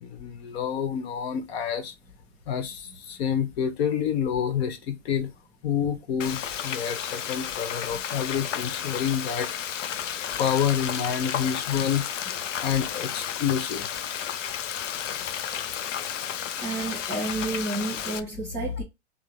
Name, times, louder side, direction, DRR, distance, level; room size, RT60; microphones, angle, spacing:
voice 1, 0.0-1.9 2.5-5.3 5.6-9.5 10.4-12.0 12.6-13.9, left 8 dB, 55° left, 1.0 m, -28 dB
Frying (food), 6.2-18.2, left 9 dB, 80° left, 0.6 m, -32 dB
voice 2, 16.6-18.8, right 2 dB, 10° right, 1.2 m, -30 dB
3.7 x 2.0 x 3.2 m
hypercardioid pair, 115°, 36 cm